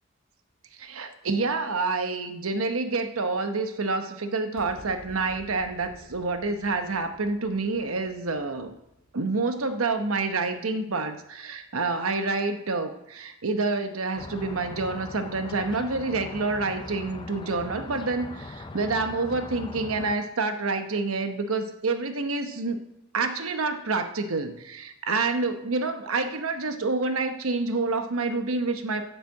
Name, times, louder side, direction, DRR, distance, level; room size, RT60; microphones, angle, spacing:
voice 1, 0.8-8.7 9.1-22.8 23.1-29.0, right 3 dB, 90° right, 8 dB, 1.0 m, -28 dB
sound 1, 4.6-11.2, equal, 55° left, 2.6 m, -52 dB
sound 2, 14.2-20.2, left 2 dB, 20° left, 0.5 m, -40 dB
9.1 x 6.6 x 7.6 m, 0.84 s
head